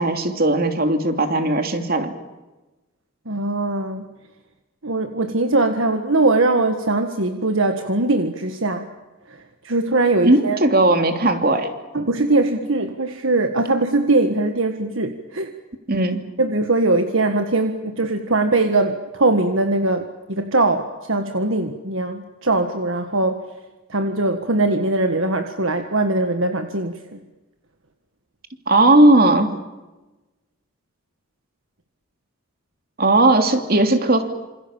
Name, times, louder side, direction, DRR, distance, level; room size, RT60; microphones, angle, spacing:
voice 1, 0.0-2.1 10.2-11.7 15.9-16.2 28.7-29.5 33.0-34.2, right 2 dB, 45° right, 6 dB, 2.9 m, -17 dB
voice 2, 3.2-4.1 4.8-8.9 9.3-10.6 11.9-15.5 16.4-23.4 23.9-27.2, right 2 dB, 65° right, 7 dB, 1.7 m, -21 dB
27.5 x 27.0 x 7.3 m, 1.1 s
head